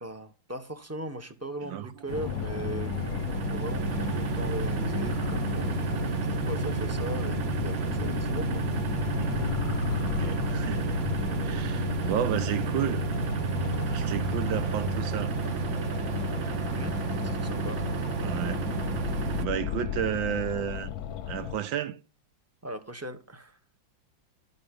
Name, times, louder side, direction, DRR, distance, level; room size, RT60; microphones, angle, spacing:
voice 1, 0.0-2.9 3.5-5.8 6.2-8.6 16.7-17.0 17.2-17.9 22.6-23.6, right 1 dB, 10° right, 0.7 m, -38 dB
sound 1, 2.1-21.6, left 9 dB, 60° left, 1.1 m, -34 dB
sound 2, 2.1-19.5, right 6 dB, 50° right, 0.9 m, -31 dB
voice 2, 9.2-9.6 10.0-11.0 11.4-13.0 13.9-15.3 18.2-18.6 19.4-20.9 21.3-22.0, right 10 dB, 80° right, 1.5 m, -32 dB
11.5 x 8.1 x 5.3 m
omnidirectional pair, 2.1 m